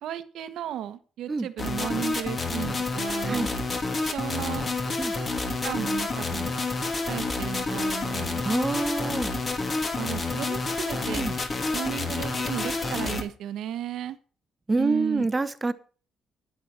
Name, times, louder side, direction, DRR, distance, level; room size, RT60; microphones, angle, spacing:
voice 1, 0.0-3.4 4.0-4.7 5.6-6.5 7.1-8.4 9.9-11.2 11.7-14.2 14.8-15.3, right 10 dB, 75° right, 1.1 m, -34 dB
sound 1, 1.6-13.2, left 3 dB, 40° left, 2.7 m, -29 dB
voice 2, 8.4-9.3 11.1-11.3 14.7-15.7, right 3 dB, 25° right, 1.0 m, -26 dB
11.0 x 9.1 x 4.3 m
cardioid pair, 90°, 0 cm